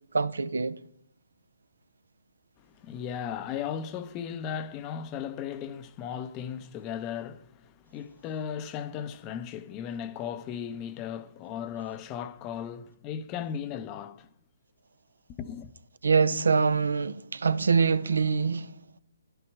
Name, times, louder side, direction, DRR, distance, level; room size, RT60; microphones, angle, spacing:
voice 1, 0.1-0.8 16.0-18.7, right 5 dB, 70° right, 0.7 m, -24 dB
voice 2, 2.6-14.3 15.4-15.7, left 8 dB, 25° left, 0.7 m, -36 dB
12.0 x 11.0 x 4.7 m
figure-of-eight pair, 135°, 0 cm